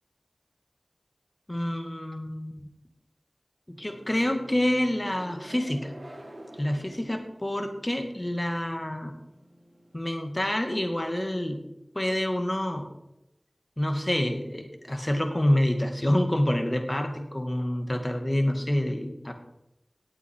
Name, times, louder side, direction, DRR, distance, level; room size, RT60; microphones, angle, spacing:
voice 1, 1.5-2.7 3.7-5.9 6.6-9.2 9.9-11.6 11.9-12.9 13.8-19.3, left 1 dB, 30° left, 5 dB, 2.2 m, -27 dB
sound 1, 3.7-10.0, right 1 dB, 70° right, 4.9 m, -48 dB
18.0 x 8.3 x 4.8 m, 0.88 s
wide cardioid pair, 40°, 0 cm